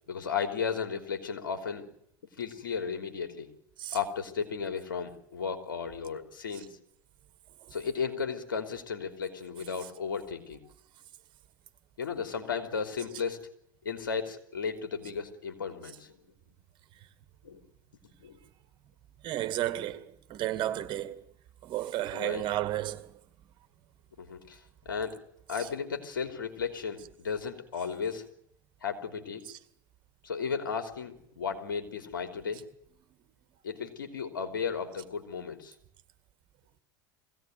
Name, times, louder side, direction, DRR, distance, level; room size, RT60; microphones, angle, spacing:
voice 1, 0.1-1.9 2.4-3.5 3.9-6.8 7.7-10.6 12.0-13.4 13.8-16.1 17.4-17.6 18.2-18.4 22.1-22.4 24.2-24.6 24.8-25.2 25.5-28.2 28.8-29.4 30.2-32.7 33.6-35.7, left 6 dB, 85° left, 3.3 m, -34 dB
voice 2, 19.2-21.2 21.6-23.2 25.6-25.7 29.5-29.6, right 14 dB, 45° right, 2.1 m, -33 dB
22.0 x 17.0 x 9.3 m
hypercardioid pair, 85°, 11 cm